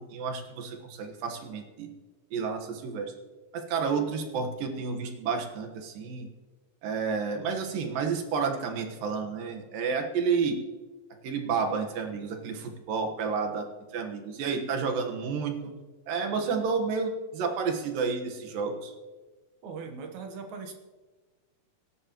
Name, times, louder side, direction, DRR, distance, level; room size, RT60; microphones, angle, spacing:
voice 1, 0.1-1.9 2.3-3.1 3.5-6.3 6.8-10.6 11.2-13.7 13.9-15.7 16.1-18.9, right 5 dB, 90° right, 4 dB, 3.2 m, -30 dB
voice 2, 19.6-20.7, right 5 dB, 65° right, 4 dB, 2.5 m, -39 dB
25.5 x 11.0 x 3.0 m, 1.3 s
omnidirectional pair, 3.8 m